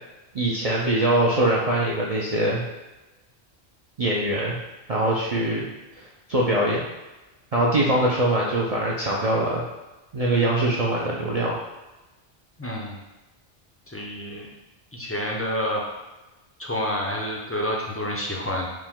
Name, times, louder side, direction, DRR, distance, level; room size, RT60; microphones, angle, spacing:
voice 1, 0.3-2.6 4.0-4.6 4.9-5.7 6.3-6.8 7.5-9.6 10.1-11.5, right 1 dB, 55° right, -4 dB, 0.4 m, -22 dB
voice 2, 12.6-13.0 13.9-14.5 14.9-15.8 16.6-18.7, left 1 dB, 20° left, -3 dB, 0.3 m, -28 dB
4.9 x 2.1 x 3.6 m, 1.1 s
omnidirectional pair, 1.1 m